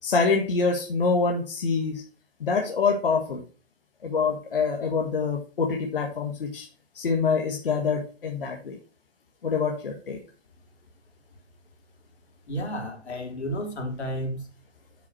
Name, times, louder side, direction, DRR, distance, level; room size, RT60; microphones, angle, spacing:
voice 1, 0.0-2.0 2.4-3.4 4.0-6.7 6.9-8.8 9.4-10.2, left 4 dB, 55° left, 1 dB, 1.5 m, -25 dB
voice 2, 12.5-14.5, equal, 80° left, 3 dB, 3.3 m, -32 dB
8.7 x 6.2 x 4.5 m, 0.36 s
hypercardioid pair, 175°, 33 cm